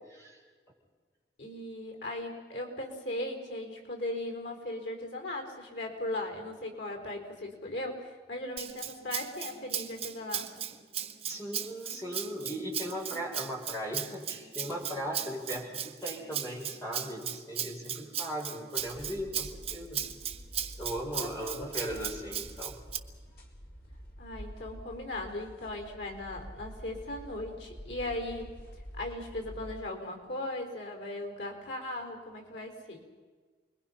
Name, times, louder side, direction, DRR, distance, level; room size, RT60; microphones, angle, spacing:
voice 1, 1.4-10.7 21.1-22.1 24.2-28.5 28.9-33.0, left 1 dB, 90° left, 3 dB, 4.2 m, -38 dB
Rattle (instrument), 8.6-23.0, right 9 dB, 35° right, 1.3 m, -37 dB
voice 2, 11.3-20.0 20.8-22.8, equal, 20° left, -2 dB, 6.2 m, -38 dB
sound 1, 18.8-29.8, equal, 55° left, 4.4 m, -48 dB
29.5 x 22.0 x 5.8 m, 1.5 s
head